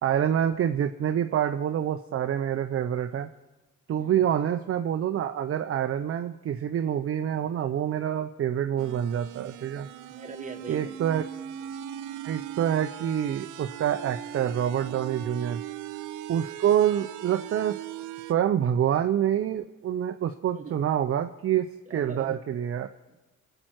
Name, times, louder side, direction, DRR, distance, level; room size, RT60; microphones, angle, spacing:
voice 1, 0.0-3.3 3.9-9.9 10.7-11.2 12.2-15.6 16.3-17.8 18.2-22.9, right 10 dB, 50° right, 8 dB, 0.6 m, -27 dB
sound 1, 8.8-18.3, right 11 dB, 85° right, 0.6 m, -39 dB
voice 2, 10.1-11.0 20.5-20.8 21.9-22.5 23.1-23.2, right 4 dB, 25° right, 4 dB, 1.6 m, -42 dB
21.5 x 7.7 x 4.6 m, 1.1 s
cardioid pair, 90°, 30 cm